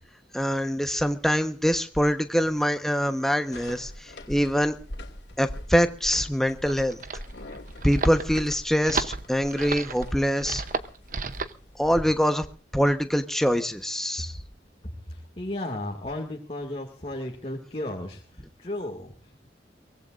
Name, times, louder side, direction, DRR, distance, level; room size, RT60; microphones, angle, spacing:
voice 1, 0.3-4.8 5.4-7.0 7.8-10.6 11.8-12.4 12.7-14.4, equal, ahead, 7 dB, 1.2 m, -24 dB
sound 1, 3.5-12.1, left 1 dB, 75° left, 2.7 m, -42 dB
sound 2, 6.4-11.6, right 4 dB, 50° right, 0.9 m, -33 dB
voice 2, 15.1-19.5, left 1 dB, 35° left, 0 dB, 2.2 m, -35 dB
23.5 x 18.5 x 2.6 m, 0.39 s
head